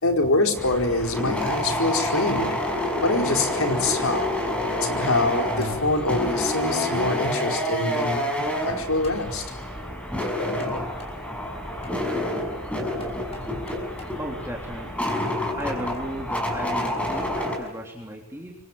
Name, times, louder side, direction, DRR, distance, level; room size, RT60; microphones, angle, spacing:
voice 1, 0.0-2.6 3.0-4.3 4.8-8.2 8.6-9.4, left 2 dB, 80° left, 3 dB, 4.8 m, -24 dB
sound 1, 0.6-17.6, left 1 dB, 5° left, 5.8 m, -28 dB
sound 2, 5.6-6.0 6.8-6.9 7.4-7.5 7.9-8.0 9.0-9.3 10.2-10.7 11.0-11.2 11.8-12.0 13.0-14.2 15.3-16.0 16.9-17.0 17.7-17.8, left 2 dB, 30° left, 6.3 m, -47 dB
voice 2, 14.2-15.3 15.6-18.5, equal, 10° right, -1 dB, 3.6 m, -35 dB
27.0 x 24.5 x 7.5 m, 0.98 s
head